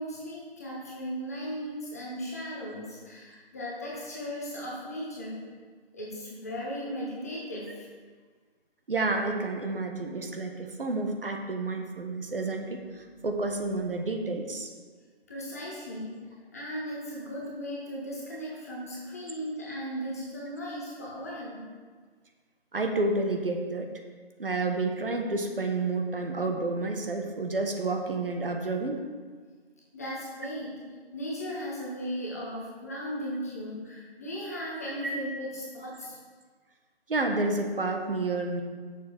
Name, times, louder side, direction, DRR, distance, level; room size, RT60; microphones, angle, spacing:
voice 1, 0.0-5.4 5.9-7.9 15.3-16.2 16.5-21.6 29.9-30.7 31.1-36.2, equal, 15° left, -5 dB, 0.9 m, -37 dB
voice 2, 8.9-14.7 22.7-23.9 24.4-29.0 35.0-35.1 37.1-38.6, right 2 dB, 60° right, 3 dB, 1.3 m, -30 dB
7.4 x 6.7 x 4.4 m, 1.5 s
figure-of-eight pair, 160°, 31 cm